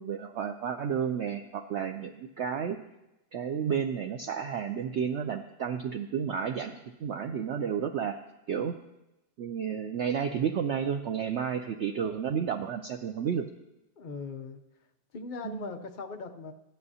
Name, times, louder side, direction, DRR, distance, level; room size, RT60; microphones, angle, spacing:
voice 1, 0.0-2.8 3.3-6.7 7.0-8.2 8.5-8.8 9.4-13.5 15.4-15.7, right 7 dB, 80° right, 6 dB, 0.6 m, -31 dB
voice 2, 14.0-14.6 15.1-16.5, left 4 dB, 55° left, 5 dB, 0.5 m, -39 dB
14.5 x 10.5 x 2.8 m, 0.94 s
omnidirectional pair, 1.7 m